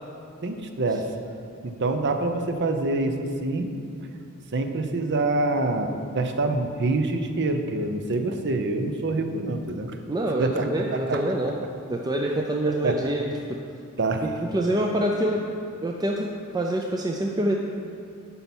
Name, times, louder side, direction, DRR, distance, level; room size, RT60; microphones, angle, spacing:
voice 1, 0.4-1.1 1.6-3.7 4.5-10.0 10.4-10.7 11.1-11.2 12.8-13.0 14.0-14.2, right 2 dB, 50° right, 6 dB, 0.7 m, -26 dB
voice 2, 10.1-11.5 11.9-13.2 14.5-15.4 15.8-16.3 16.5-17.6, right 1 dB, 20° right, 0 dB, 0.5 m, -25 dB
9.7 x 5.6 x 6.1 m, 2.4 s
head